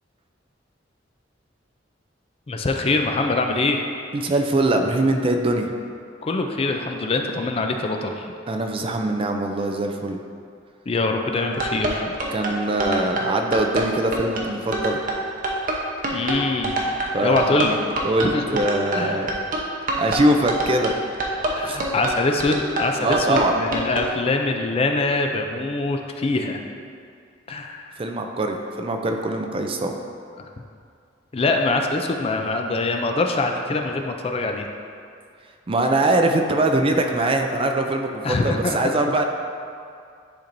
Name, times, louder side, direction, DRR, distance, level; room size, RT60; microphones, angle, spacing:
voice 1, 2.5-3.8 6.2-8.3 10.9-12.1 16.1-16.8 17.2-17.8 18.2-18.4 18.9-19.3 21.5-26.7 27.5-27.9 30.4-30.5 31.3-34.7 38.2-38.9, left 3 dB, 30° left, 3 dB, 0.4 m, -24 dB
voice 2, 4.1-5.7 8.5-10.2 12.3-15.0 17.1-17.7 18.0-19.3 20.0-20.9 21.6-21.8 23.0-23.6 28.0-29.9 35.7-39.2, right 2 dB, 30° right, 4 dB, 0.4 m, -22 dB
sound 1, 11.4-24.1, right 2 dB, 45° right, 0.8 m, -26 dB
10.5 x 4.4 x 2.6 m, 2.3 s
head